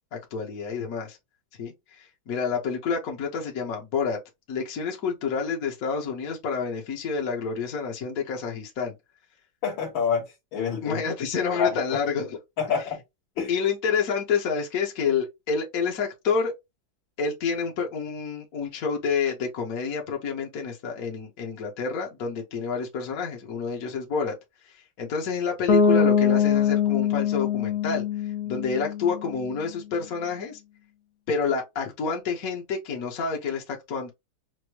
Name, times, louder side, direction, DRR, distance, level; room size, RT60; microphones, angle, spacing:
voice 1, 0.1-1.2 1.6-4.2 4.5-8.9 10.8-12.4 13.5-16.5 17.2-24.4 24.6-30.6 31.3-34.1, left 5 dB, 55° left, 1.2 m, -28 dB
voice 2, 9.6-10.3 10.5-11.0 11.5-12.0 12.6-13.0 13.4-13.5, left 6 dB, 70° left, 1.9 m, -27 dB
Bass guitar, 25.7-29.5, left 7 dB, 90° left, 1.6 m, -23 dB
6.1 x 2.1 x 3.0 m
omnidirectional pair, 2.3 m